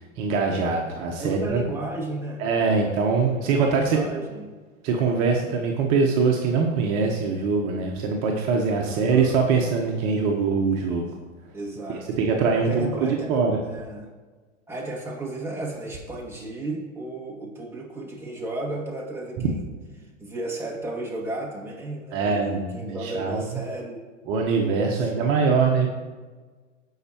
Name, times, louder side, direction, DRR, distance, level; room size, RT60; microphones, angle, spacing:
voice 1, 0.2-1.6 2.4-4.0 4.8-11.0 12.2-13.6 22.1-23.4 24.3-25.9, right 5 dB, 45° right, 1 dB, 1.2 m, -23 dB
voice 2, 1.2-2.9 3.4-4.5 8.8-9.5 11.5-12.1 12.6-13.4 13.7-14.1 14.7-19.7 20.0-24.0 24.7-25.1, right 2 dB, 5° right, -4 dB, 2.2 m, -34 dB
16.0 x 5.8 x 3.0 m, 1.3 s
hypercardioid pair, 105°, 38 cm